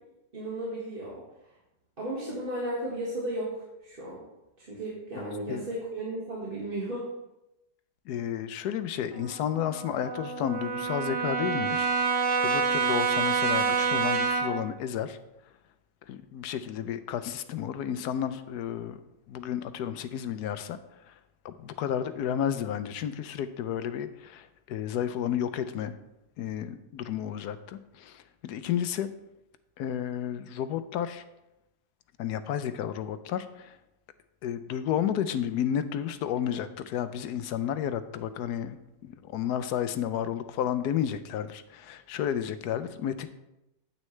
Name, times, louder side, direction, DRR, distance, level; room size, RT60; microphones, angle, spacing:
voice 1, 0.3-1.2 2.0-4.3 4.6-7.1, right 1 dB, 30° right, -6 dB, 1.9 m, -34 dB
voice 2, 8.1-15.2 16.1-19.0 19.3-20.8 21.1-21.2 21.4-26.0 26.4-29.1 29.8-31.2 32.2-33.8 34.4-38.8 39.0-43.3, left 9 dB, 75° left, 11 dB, 1.1 m, -32 dB
Brass instrument, 9.1-14.7, right 5 dB, 80° right, 1.6 m, -27 dB
9.3 x 8.6 x 3.2 m, 0.91 s
omnidirectional pair, 1.8 m